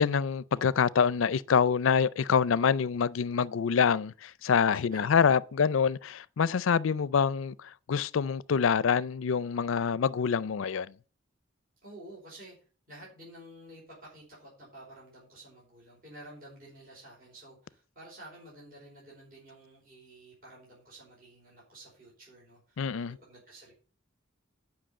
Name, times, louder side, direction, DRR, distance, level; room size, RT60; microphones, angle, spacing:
voice 1, 0.0-10.9 22.8-23.2, left 6 dB, 75° left, 0.4 m, -26 dB
voice 2, 4.9-5.3 11.8-12.5 12.9-23.7, right 1 dB, 45° right, 5.0 m, -51 dB
10.0 x 5.8 x 7.4 m
head